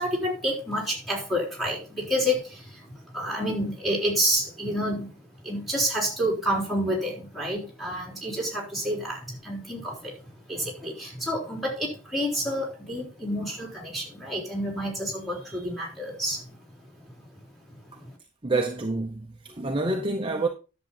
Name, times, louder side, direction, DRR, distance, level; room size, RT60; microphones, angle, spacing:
voice 1, 0.0-10.1 10.5-16.6 17.0-17.1 17.7-18.1, equal, ahead, 3.9 m, -29 dB
voice 2, 18.4-20.5, right 2 dB, 25° right, 0.8 m, -27 dB
10.5 x 7.2 x 4.1 m
head